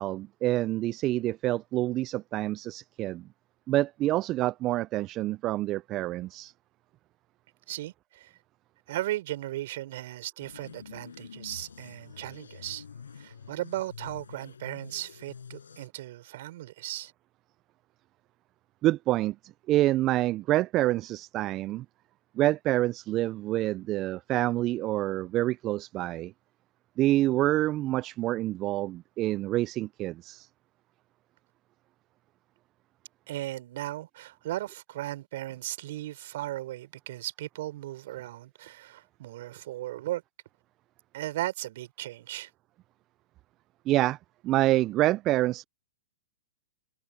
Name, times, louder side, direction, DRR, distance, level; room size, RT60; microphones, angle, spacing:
voice 1, 0.0-3.3 3.7-6.5 18.8-19.4 19.7-21.9 22.4-26.3 27.0-30.5 43.9-44.2 44.4-45.6, right 16 dB, 35° right, 0.3 m, -27 dB
voice 2, 7.7-8.3 8.9-12.8 13.2-17.1 33.3-40.2 41.1-42.5, right 15 dB, 55° right, 5.8 m, -36 dB
sound 1, 10.4-15.9, left 6 dB, 85° left, 5.3 m, -47 dB
hypercardioid pair, 120°, 0 cm